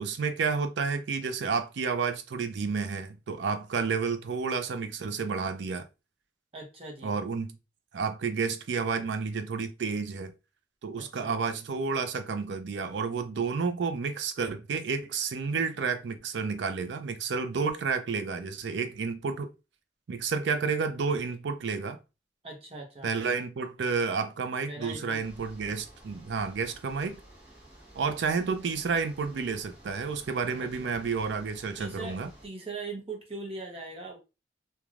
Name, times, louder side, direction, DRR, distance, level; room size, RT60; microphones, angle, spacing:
voice 1, 0.0-5.9 7.0-7.6 7.9-10.3 10.8-19.5 20.1-22.0 23.0-27.2 27.9-32.3, right 5 dB, 75° right, 0.4 m, -30 dB
voice 2, 6.5-7.1 11.0-11.4 22.4-23.1 24.7-25.2 28.0-28.2 30.6-30.9 31.8-34.2, right 3 dB, 35° right, 0.7 m, -41 dB
sound 1, 25.2-32.5, right 1 dB, 10° right, 1.0 m, -52 dB
3.1 x 2.2 x 2.4 m
head